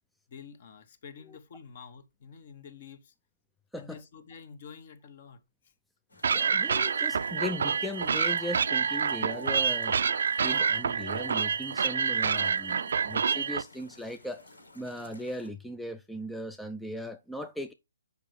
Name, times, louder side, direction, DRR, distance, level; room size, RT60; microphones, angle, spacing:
voice 1, 0.3-3.1 3.7-5.7, left 6 dB, 45° left, 1.3 m, -49 dB
sound 1, 6.1-15.5, left 2 dB, 90° left, 2.7 m, -54 dB
sound 2, 6.2-13.6, right 6 dB, 65° right, 0.5 m, -27 dB
voice 2, 6.3-10.0 10.4-14.5 14.7-17.7, left 1 dB, ahead, 0.4 m, -38 dB
6.0 x 5.4 x 4.7 m
hypercardioid pair, 145°, 0 cm